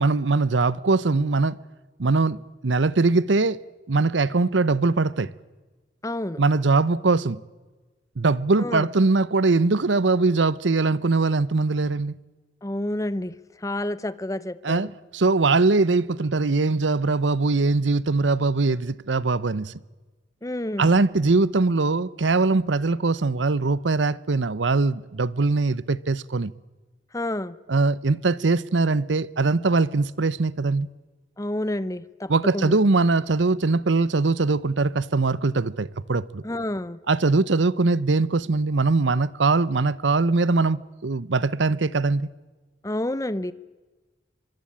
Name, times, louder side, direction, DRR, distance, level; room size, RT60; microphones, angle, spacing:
voice 1, 0.0-1.6 2.0-3.6 3.9-5.3 6.4-7.4 8.2-12.1 14.6-19.7 20.8-26.5 27.7-30.9 32.3-36.4 37.1-42.3, right 3 dB, 85° right, 0.8 m, -21 dB
voice 2, 6.0-6.4 8.6-8.9 12.6-13.3 13.6-14.9 20.4-20.9 27.1-27.6 31.4-32.8 36.4-37.0 42.8-43.5, left 1 dB, 20° left, 0.7 m, -29 dB
25.0 x 23.0 x 8.7 m
head